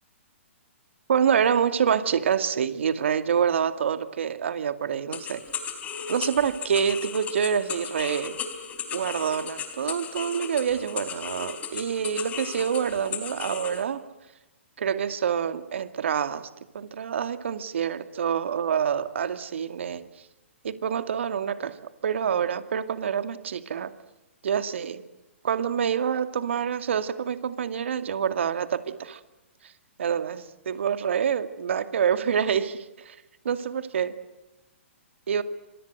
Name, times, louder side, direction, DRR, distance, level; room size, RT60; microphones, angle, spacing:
voice 1, 1.1-5.4 6.1-8.4 8.9-14.0 14.8-16.5 16.7-20.0 20.6-21.8 22.0-23.9 24.4-25.0 25.4-29.2 30.0-33.2 33.4-34.2 35.3-35.4, right 7 dB, 65° right, 10 dB, 2.3 m, -26 dB
sound 1, 5.1-13.8, left 7 dB, 20° left, 4.0 m, -36 dB
28.0 x 26.0 x 7.9 m, 0.99 s
figure-of-eight pair, 120°, 7 cm